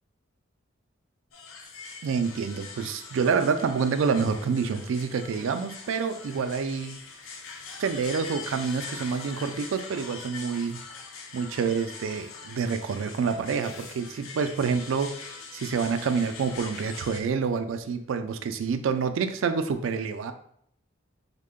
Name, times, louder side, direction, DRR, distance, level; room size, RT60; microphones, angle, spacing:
sound 1, 1.3-17.2, left 4 dB, 80° left, 0.5 m, -43 dB
voice 1, 2.0-7.0 7.8-10.8 11.3-15.2 15.5-20.3, right 5 dB, 75° right, 9 dB, 0.3 m, -27 dB
3.5 x 2.1 x 3.6 m, 0.67 s
head